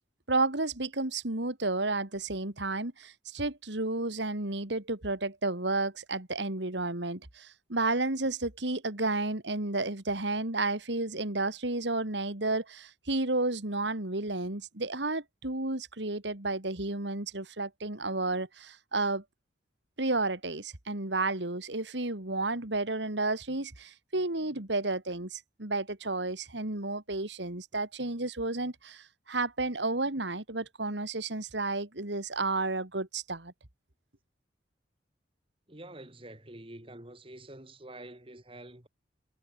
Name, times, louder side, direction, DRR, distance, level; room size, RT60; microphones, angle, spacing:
voice 1, 0.3-19.2 20.0-33.5, right 2 dB, 70° right, 2.7 m, -32 dB
voice 2, 35.7-38.9, right 1 dB, 30° right, 2.9 m, -47 dB
head